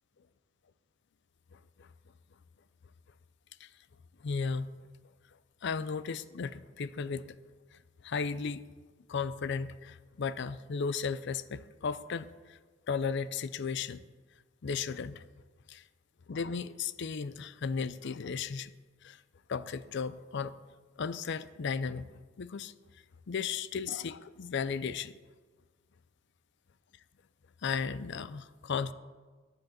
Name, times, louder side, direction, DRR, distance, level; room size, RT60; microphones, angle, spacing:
voice 1, 1.5-1.9 3.6-3.7 4.2-4.7 5.6-7.2 7.7-8.6 9.1-12.6 12.9-14.0 14.6-15.2 15.7-15.8 16.3-18.7 19.0-19.2 19.5-20.5 21.0-22.7 23.3-25.2 27.6-28.9, left 5 dB, 60° left, 15 dB, 0.5 m, -35 dB
10.0 x 7.9 x 7.3 m, 1.4 s
head